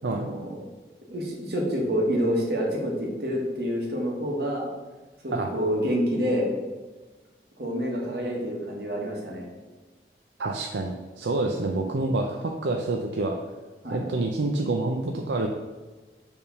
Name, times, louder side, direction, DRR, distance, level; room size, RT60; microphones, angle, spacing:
voice 1, 0.0-0.6 1.1-4.7 5.2-6.5 7.6-9.5 13.8-14.0, equal, 65° right, -2 dB, 1.7 m, -28 dB
voice 2, 10.4-13.4 13.9-15.5, right 2 dB, 85° right, 2 dB, 0.6 m, -27 dB
7.1 x 3.6 x 5.4 m, 1.2 s
head